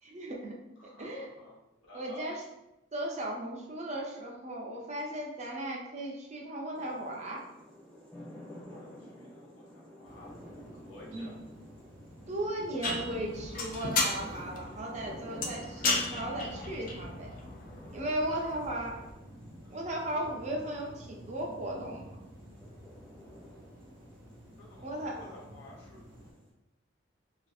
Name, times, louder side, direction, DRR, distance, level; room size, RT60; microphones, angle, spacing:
voice 1, 0.0-0.5 0.8-1.3 1.9-2.4 2.9-7.4 11.1-11.3 12.3-17.3 17.9-19.0 19.7-22.0 24.8-25.2, right 1 dB, 35° right, -1 dB, 0.5 m, -36 dB
voice 2, 0.8-1.6 1.8-2.3 8.6-10.4 10.7-11.4 18.2-18.5 19.6-19.9 24.6-26.0, left 2 dB, 80° left, -4 dB, 0.9 m, -52 dB
sound 1, 6.7-26.5, left 1 dB, 5° left, 0.7 m, -52 dB
sound 2, 10.0-26.3, equal, 80° right, 0.7 m, -51 dB
sound 3, 12.8-19.1, left 3 dB, 45° left, 0.3 m, -35 dB
2.5 x 2.4 x 2.3 m, 0.96 s
head